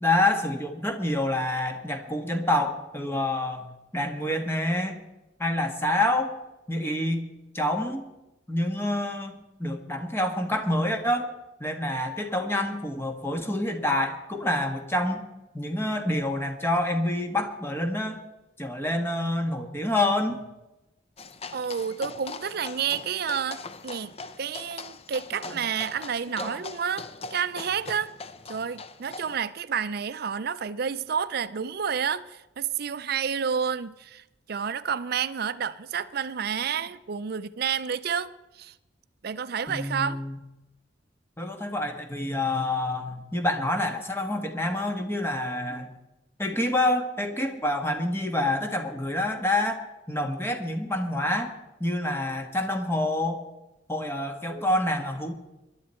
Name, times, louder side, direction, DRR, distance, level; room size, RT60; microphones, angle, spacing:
voice 1, 0.0-5.0 5.4-6.4 6.7-7.3 7.5-8.0 8.5-11.3 11.6-15.2 15.5-18.2 18.6-20.4 25.4-25.6 26.4-26.6 39.7-40.4 41.4-45.9 46.4-49.8 50.1-51.5 51.8-53.4 53.9-55.4, left 1 dB, 15° left, 1.4 m, -27 dB
sound 1, 21.2-29.4, left 4 dB, 35° left, 0.6 m, -41 dB
voice 2, 21.5-28.1 28.5-38.7 39.2-40.2, right 7 dB, 55° right, 0.5 m, -30 dB
20.5 x 11.5 x 4.4 m
head